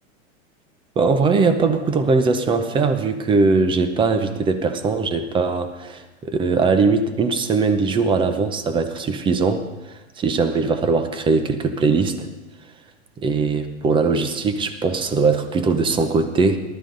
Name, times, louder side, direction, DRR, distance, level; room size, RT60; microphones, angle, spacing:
voice 1, 1.0-12.3 13.2-16.6, right 4 dB, 10° right, 9 dB, 0.7 m, -20 dB
20.0 x 12.5 x 3.9 m, 1.1 s
supercardioid pair, 150°, 42 cm